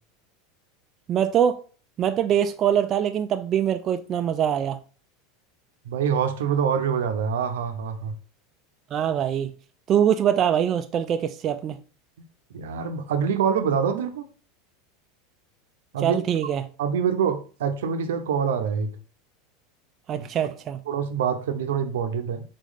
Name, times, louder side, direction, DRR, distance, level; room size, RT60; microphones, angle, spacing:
voice 1, 1.1-1.6 2.0-4.8 8.9-9.5 9.9-11.8 16.0-16.6 20.1-20.8, right 9 dB, 40° right, 0.4 m, -23 dB
voice 2, 5.9-8.1 12.5-14.3 15.9-16.2 16.8-19.0 20.2-20.3 20.9-22.4, right 7 dB, 85° right, 0.6 m, -25 dB
4.2 x 3.2 x 3.9 m
hypercardioid pair, 105°, 0 cm